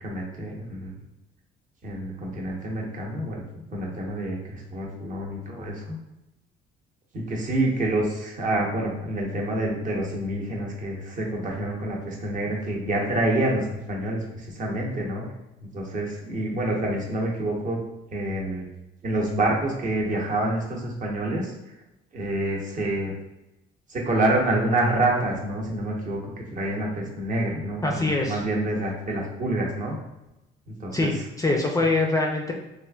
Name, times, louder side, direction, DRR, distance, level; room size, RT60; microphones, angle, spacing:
voice 1, 0.0-0.9 1.8-3.4 3.7-5.9 7.1-15.3 15.6-17.8 18.1-18.7 19.0-21.5 22.1-23.1 23.9-30.0 30.7-31.2, right 1 dB, 40° right, -1 dB, 0.8 m, -27 dB
voice 2, 27.8-28.4 30.9-32.5, left 2 dB, 15° left, 0 dB, 0.4 m, -24 dB
3.1 x 2.5 x 2.3 m, 0.93 s
cardioid pair, 100°, 20 cm